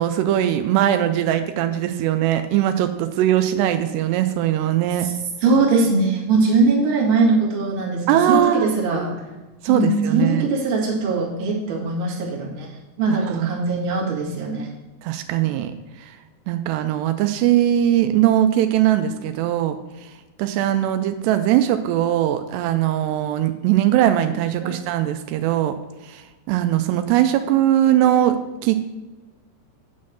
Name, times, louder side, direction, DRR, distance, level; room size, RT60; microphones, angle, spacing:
voice 1, 0.0-5.1 8.1-8.7 9.6-10.5 13.1-13.5 15.0-16.2 16.5-20.1 20.4-25.8 26.0-28.4 28.6-28.9, right 12 dB, 85° right, 8 dB, 2.6 m, -20 dB
voice 2, 5.4-9.2 9.7-12.7 13.0-14.7 24.6-24.8, right 3 dB, 45° right, -3 dB, 2.0 m, -21 dB
9.2 x 4.3 x 7.5 m, 1.1 s
omnidirectional pair, 4.8 m